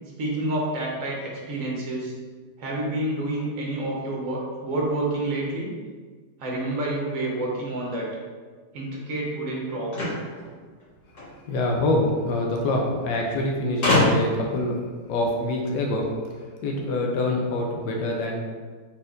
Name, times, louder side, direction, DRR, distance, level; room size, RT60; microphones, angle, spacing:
voice 1, 0.2-2.1 2.6-5.7 6.4-8.1 8.7-10.2, right 1 dB, 55° right, -3 dB, 1.2 m, -28 dB
sound 1, 9.9-11.3 12.4-12.5 12.7-12.8 13.8-14.5, left 1 dB, 60° left, 2.0 m, -23 dB
voice 2, 11.5-14.8 15.1-16.0 16.6-18.4, left 2 dB, 80° left, 0 dB, 1.2 m, -25 dB
4.2 x 3.9 x 2.4 m, 1.5 s
omnidirectional pair, 1.9 m